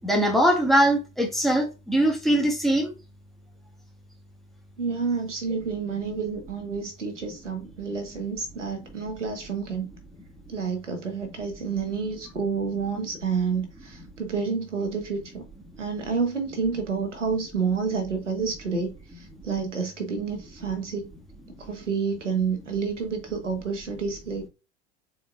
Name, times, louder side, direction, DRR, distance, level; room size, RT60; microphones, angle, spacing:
voice 1, 0.0-2.9, right 1 dB, ahead, 1.2 m, -21 dB
voice 2, 4.8-9.9 10.5-15.4 15.8-21.1 21.6-24.5, right 5 dB, 85° right, 1.1 m, -29 dB
4.1 x 3.8 x 2.4 m
figure-of-eight pair, 85°, 35 cm